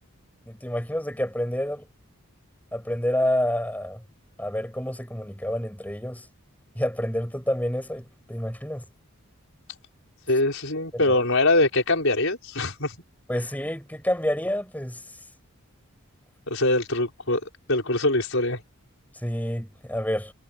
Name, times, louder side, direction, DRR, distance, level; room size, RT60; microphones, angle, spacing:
voice 1, 0.5-1.9 2.7-4.0 4.4-6.3 6.8-8.9 10.9-11.2 13.3-15.0 19.2-20.3, equal, 5° left, 7.3 m, -28 dB
voice 2, 10.3-12.9 16.5-17.4 17.7-18.6, left 2 dB, 65° left, 6.0 m, -23 dB
head